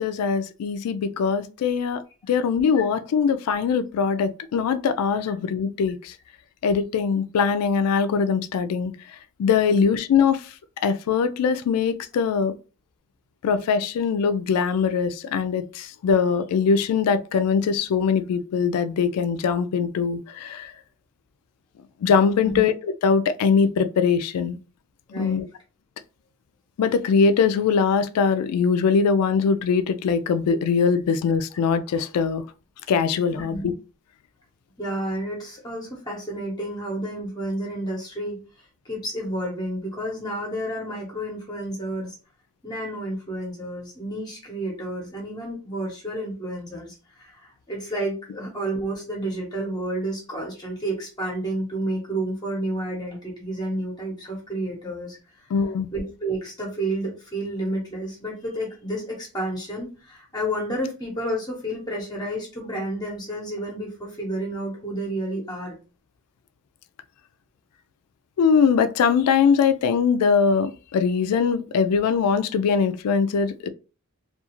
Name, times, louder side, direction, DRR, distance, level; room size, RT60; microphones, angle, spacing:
voice 1, 0.0-2.0 2.3-6.1 6.6-8.9 9.4-10.5 10.8-12.5 13.4-20.7 22.0-22.7 23.0-24.6 25.1-25.5 26.8-32.4 32.9-33.7 55.5-55.9 68.4-73.7, left 6 dB, 80° left, 0.3 m, -22 dB
voice 2, 25.1-25.4 33.3-33.7 34.8-42.2 42.6-55.5 55.9-65.8, right 1 dB, 20° left, 0.7 m, -30 dB
2.3 x 2.3 x 2.9 m
head